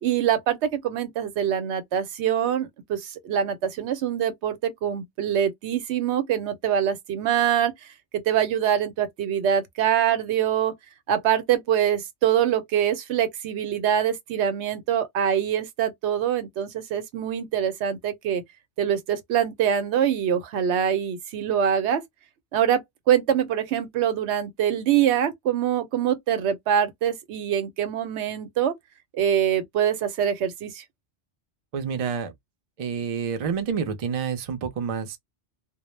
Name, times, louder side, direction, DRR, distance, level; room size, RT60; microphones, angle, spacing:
voice 1, 0.0-7.7 8.1-10.7 11.1-18.4 18.8-22.0 22.5-22.8 23.1-28.7 29.1-30.8, right 9 dB, 85° right, 0.9 m, -24 dB
voice 2, 31.7-32.3 32.8-35.2, right 6 dB, 50° right, 0.5 m, -28 dB
2.1 x 2.0 x 3.0 m
omnidirectional pair, 1.1 m